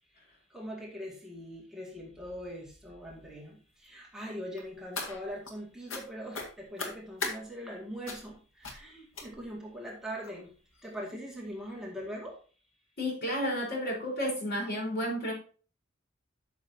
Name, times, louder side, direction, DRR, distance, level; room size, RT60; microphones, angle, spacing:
voice 1, 0.5-10.5 10.8-12.4, equal, 5° right, -3 dB, 2.1 m, -42 dB
sound 1, 4.6-5.5 5.9-6.0 6.3-7.4 8.1-8.3 8.6-8.8 9.1-9.6 10.2-10.3 10.8-10.9 11.2-11.3, left 3 dB, 90° left, 2.1 m, -38 dB
voice 2, 13.0-15.3, equal, 55° left, -1 dB, 4.3 m, -31 dB
12.0 x 6.5 x 2.8 m, 0.39 s
head